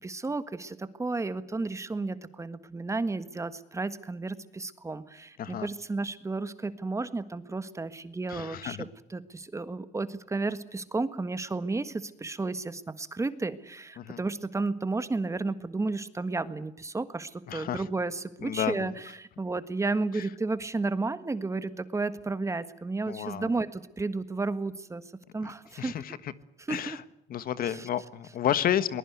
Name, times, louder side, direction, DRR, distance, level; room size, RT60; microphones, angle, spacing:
voice 1, 0.0-25.0 25.3-25.9 26.7-27.0 27.6-27.9, right 3 dB, 15° right, 12 dB, 1.6 m, -32 dB
voice 2, 8.3-8.8 14.0-14.2 17.5-17.8 18.4-18.9 20.1-20.2 23.1-23.5 25.4-25.5 25.8-26.2 26.7-27.0 27.3-29.0, left 10 dB, 60° left, 14 dB, 1.5 m, -31 dB
22.5 x 20.5 x 8.1 m, 0.80 s
cardioid pair, 110°, 17 cm